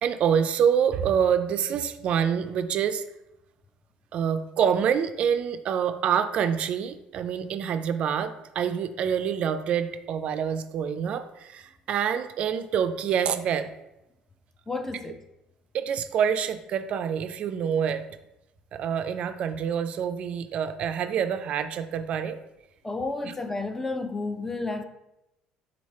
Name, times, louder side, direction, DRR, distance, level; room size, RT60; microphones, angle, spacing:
voice 1, 0.0-3.0 4.1-13.7 15.7-18.0 18.7-22.4 23.2-23.3, right 8 dB, 55° right, 10 dB, 0.3 m, -26 dB
voice 2, 14.7-15.2 22.8-24.8, left 3 dB, 15° left, 7 dB, 0.4 m, -31 dB
4.0 x 3.1 x 4.2 m, 0.90 s
cardioid pair, 105°, 2 cm